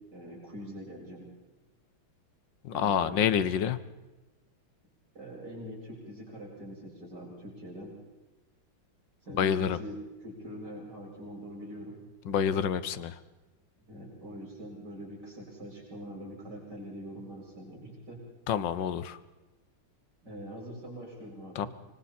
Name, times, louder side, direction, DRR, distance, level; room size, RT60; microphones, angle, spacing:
voice 1, 0.1-1.3 2.7-3.3 5.1-7.9 9.2-12.0 13.9-18.2 20.2-21.7, equal, 50° right, -3 dB, 7.8 m, -43 dB
voice 2, 2.6-3.8 9.4-9.8 12.2-13.1 18.5-19.2 21.5-21.7, left 8 dB, 65° left, 14 dB, 1.5 m, -27 dB
26.0 x 23.5 x 4.4 m, 1.1 s
omnidirectional pair, 2.3 m